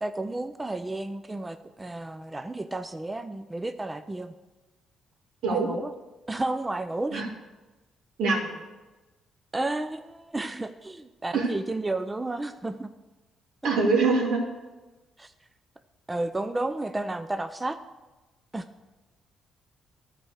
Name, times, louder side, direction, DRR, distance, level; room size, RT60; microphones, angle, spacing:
voice 1, 0.0-4.3 5.4-5.9 6.3-7.4 9.5-12.9 15.2-15.3 16.1-17.8 18.5-18.6, right 2 dB, 15° right, 10 dB, 0.4 m, -32 dB
voice 2, 8.2-8.5 11.3-11.5 13.6-14.4, right 4 dB, 85° right, -1 dB, 2.1 m, -23 dB
12.5 x 4.6 x 6.4 m, 1.1 s
cardioid pair, 90°, 0 cm